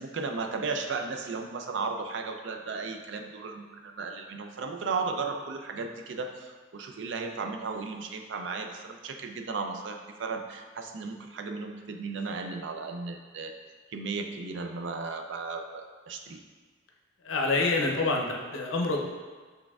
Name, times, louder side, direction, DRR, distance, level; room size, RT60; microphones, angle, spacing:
voice 1, 0.0-13.5 13.9-16.4, right 4 dB, 70° right, 5 dB, 0.4 m, -35 dB
voice 2, 17.3-19.1, left 3 dB, 85° left, 1 dB, 0.6 m, -27 dB
6.2 x 3.3 x 2.3 m, 1.4 s
head